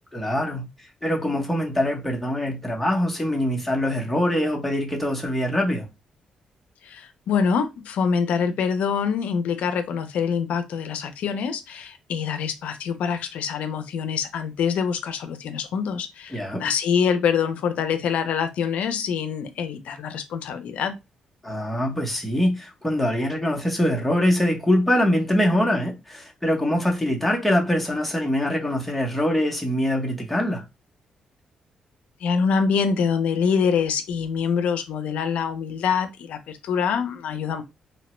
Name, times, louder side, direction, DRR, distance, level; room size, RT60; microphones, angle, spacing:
voice 1, 0.1-0.6 1.0-5.9 16.3-16.6 21.4-30.6, left 1 dB, 5° left, 0.7 m, -23 dB
voice 2, 6.8-21.0 32.2-37.6, left 6 dB, 80° left, 0.4 m, -25 dB
2.8 x 2.1 x 3.0 m
cardioid pair, 125°, 2 cm